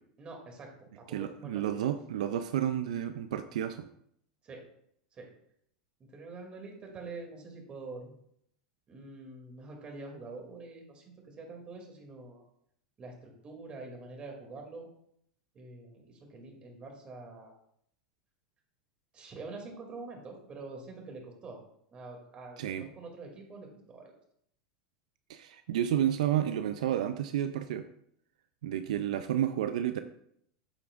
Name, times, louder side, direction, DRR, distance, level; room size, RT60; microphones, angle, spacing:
voice 1, 0.2-1.9 4.4-4.6 5.1-5.3 6.0-8.1 8.9-12.4 13.0-14.9 15.5-17.5 19.1-21.6 21.9-24.1, right 3 dB, 30° right, 1 dB, 2.6 m, -46 dB
voice 2, 1.1-3.9 22.6-22.9 25.3-27.8 28.6-30.0, right 10 dB, 80° right, 9 dB, 0.5 m, -31 dB
8.4 x 8.2 x 2.5 m, 0.70 s
supercardioid pair, 120°, 4 cm